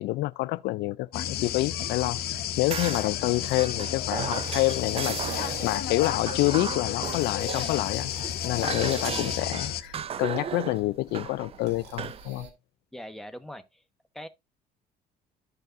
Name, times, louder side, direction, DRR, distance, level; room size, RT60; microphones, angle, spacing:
voice 1, 0.0-8.1 8.4-12.5, left 19 dB, 85° left, 0.4 m, -28 dB
sound 1, 1.1-9.8, left 10 dB, 65° left, 0.8 m, -32 dB
sound 2, 2.4-12.5, right 6 dB, 85° right, 2.3 m, -44 dB
sound 3, 2.7-5.6 6.0-8.4 8.6-12.3, right 8 dB, 35° right, 0.4 m, -36 dB
voice 2, 12.9-13.8 14.1-14.3, equal, ahead, 0.9 m, -41 dB
13.5 x 4.6 x 2.5 m
cardioid pair, 110°, 17 cm